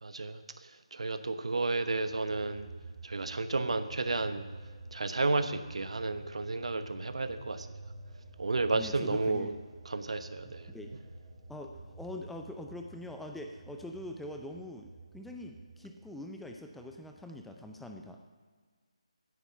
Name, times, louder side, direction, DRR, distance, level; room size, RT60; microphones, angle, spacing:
voice 1, 0.0-2.7 3.0-4.4 4.9-7.7 8.4-9.5 9.8-10.7, right 3 dB, 65° right, 10 dB, 1.1 m, -32 dB
sound 1, 2.1-17.9, right 3 dB, 20° right, 2.5 m, -50 dB
voice 2, 8.7-9.5 10.4-10.9 11.5-14.9 15.1-18.2, left 1 dB, ahead, 3 dB, 0.6 m, -44 dB
16.0 x 10.0 x 5.8 m, 1.5 s
figure-of-eight pair, 155°, 4 cm